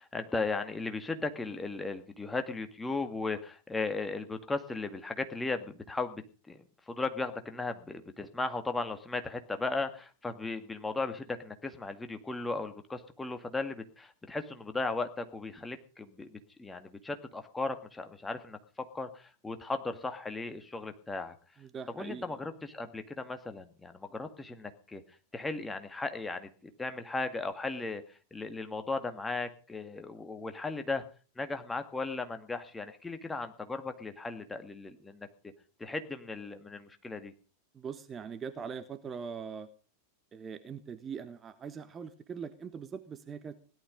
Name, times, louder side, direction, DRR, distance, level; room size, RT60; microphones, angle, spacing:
voice 1, 0.0-18.6 18.9-21.3 21.9-25.0 25.3-31.0 31.4-35.3 35.8-37.3, left 3 dB, 10° left, 8 dB, 2.0 m, -36 dB
voice 2, 21.6-22.2 37.7-39.7 40.3-43.6, right 6 dB, 20° right, 11 dB, 1.3 m, -41 dB
17.5 x 12.0 x 5.3 m, 0.38 s
figure-of-eight pair, 90°, 0 cm